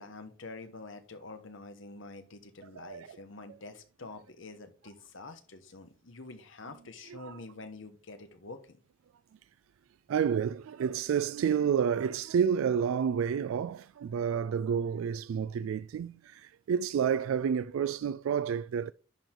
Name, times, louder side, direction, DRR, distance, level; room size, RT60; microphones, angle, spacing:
voice 1, 0.0-8.8, left 3 dB, 75° left, 1.2 m, -47 dB
voice 2, 2.8-3.2 7.1-7.4 10.1-18.9, right 7 dB, 85° right, 0.3 m, -30 dB
10.0 x 4.6 x 3.8 m
head